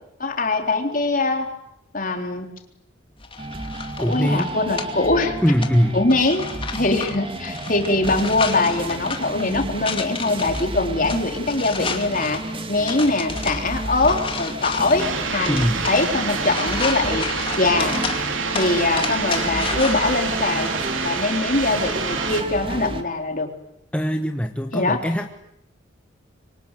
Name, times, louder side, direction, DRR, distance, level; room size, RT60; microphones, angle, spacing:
voice 1, 0.2-1.5 1.9-2.5 4.0-5.4 5.9-6.5 6.7-12.4 12.7-18.0 18.5-20.7 21.0-23.5 24.7-25.0, left 2 dB, 45° left, 4 dB, 3.9 m, -22 dB
sound 1, 3.2-20.2, left 5 dB, 30° left, 2.5 m, -33 dB
sound 2, 3.4-23.0, right 1 dB, 30° right, 2.2 m, -32 dB
voice 2, 4.0-4.5 5.4-6.0 15.5-15.9 23.9-25.3, equal, 5° left, 5 dB, 1.2 m, -21 dB
sound 3, 15.0-22.4, right 5 dB, 90° right, 3.0 m, -27 dB
26.5 x 24.5 x 9.2 m, 0.81 s
head